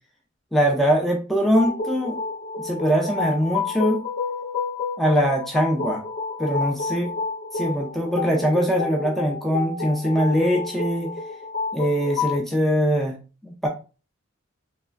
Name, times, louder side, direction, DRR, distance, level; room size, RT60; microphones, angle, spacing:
voice 1, 0.5-2.2 2.6-4.0 5.0-6.0 6.4-7.1 7.5-11.1 11.7-13.2 13.4-13.7, equal, ahead, 0 dB, 0.3 m, -22 dB
sound 1, 1.4-12.4, left 4 dB, 65° left, 1.5 m, -30 dB
3.1 x 2.3 x 2.3 m, 0.33 s
head